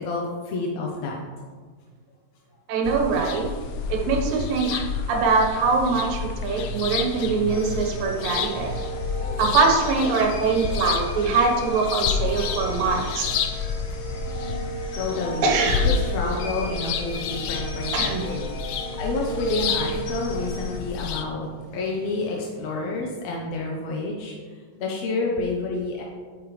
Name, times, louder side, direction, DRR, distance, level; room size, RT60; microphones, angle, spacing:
voice 1, 0.0-1.2 4.9-5.0 15.0-15.5 16.0-18.5 19.0-24.3 24.8-26.0, left 3 dB, 70° left, -2 dB, 1.6 m, -29 dB
voice 2, 2.7-3.5 3.9-8.8 9.4-13.3 15.4-15.9 17.9-18.4, right 4 dB, 75° right, 1 dB, 2.9 m, -23 dB
sound 1, 2.8-21.2, left 6 dB, 85° left, 1.7 m, -30 dB
sound 2, 7.5-20.8, right 1 dB, 55° left, 2.5 m, -34 dB
8.9 x 8.6 x 3.2 m, 1.5 s
omnidirectional pair, 4.1 m